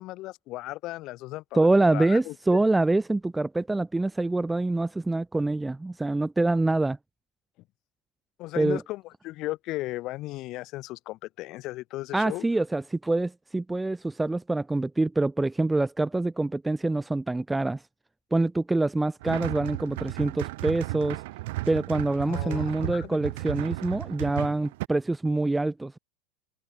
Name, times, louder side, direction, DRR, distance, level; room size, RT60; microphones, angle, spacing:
voice 1, 0.0-2.3 8.4-12.4 22.3-23.2, left 18 dB, 45° left, 0.7 m, -36 dB
voice 2, 1.5-7.0 8.6-8.8 12.1-17.8 18.3-21.2 21.7-26.0, right 2 dB, 10° right, 0.8 m, -25 dB
sound 1, 19.2-24.9, right 20 dB, 60° right, 0.9 m, -34 dB
hypercardioid pair, 90°, 0 cm